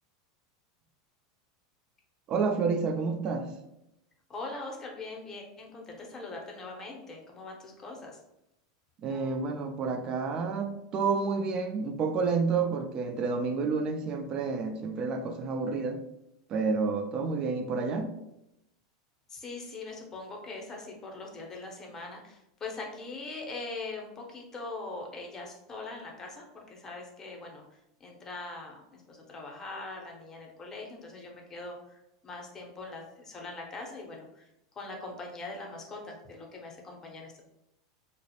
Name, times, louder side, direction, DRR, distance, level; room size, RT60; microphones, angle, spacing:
voice 1, 2.3-3.5 9.0-16.0 16.5-18.1, right 4 dB, 40° right, 7 dB, 0.3 m, -29 dB
voice 2, 4.3-8.2 19.3-27.6 28.0-34.5 34.8-37.4, left 3 dB, 25° left, 0 dB, 0.7 m, -42 dB
2.4 x 2.0 x 2.8 m, 0.85 s
hypercardioid pair, 115°, 2 cm